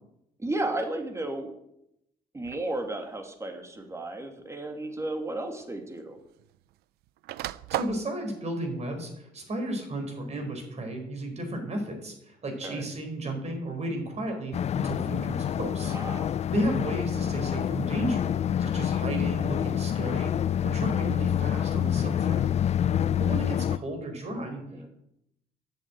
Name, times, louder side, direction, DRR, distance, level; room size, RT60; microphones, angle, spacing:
voice 1, 0.4-1.5 2.3-6.2 12.6-12.9 15.9-16.4 24.7-24.9, right 2 dB, 20° right, 4 dB, 2.6 m, -33 dB
sound 1, 2.4-2.7 3.8-3.9 5.3-5.4 5.6-6.7 7.0-8.1, right 15 dB, 85° right, 0.5 m, -35 dB
voice 2, 7.7-16.0 16.5-18.3 18.6-20.3 20.6-22.5 23.2-24.6, right 1 dB, 45° right, 4 dB, 4.5 m, -33 dB
sound 2, 14.5-23.8, left 9 dB, 45° left, 0.4 m, -27 dB
10.5 x 7.4 x 8.8 m, 0.80 s
cardioid pair, 85°, 16 cm